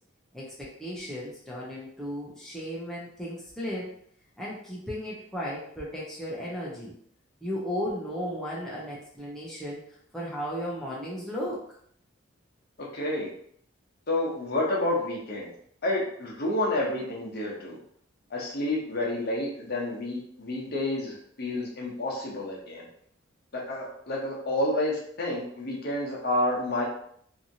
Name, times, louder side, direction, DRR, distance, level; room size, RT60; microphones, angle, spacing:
voice 1, 0.3-3.9 4.4-6.9 7.4-9.8 10.1-11.6, equal, ahead, -6 dB, 0.5 m, -35 dB
voice 2, 12.9-13.3 14.1-15.5 15.8-17.8 18.3-22.8 23.5-26.8, left 1 dB, 50° left, -3 dB, 0.8 m, -29 dB
2.8 x 2.6 x 2.7 m, 0.65 s
head